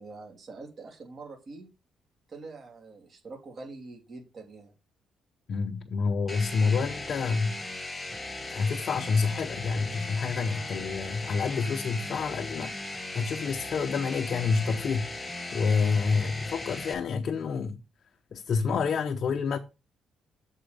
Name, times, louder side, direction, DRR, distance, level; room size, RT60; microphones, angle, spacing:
voice 1, 0.0-1.7 2.3-4.7, right 3 dB, 45° right, 3.1 m, -44 dB
voice 2, 5.5-7.6 8.5-12.8 13.1-17.8 18.3-19.6, left 5 dB, 60° left, 0.7 m, -28 dB
sound 1, 6.3-16.9, left 2 dB, 15° left, 1.3 m, -38 dB
8.0 x 4.4 x 5.1 m
cardioid pair, 90°, 0 cm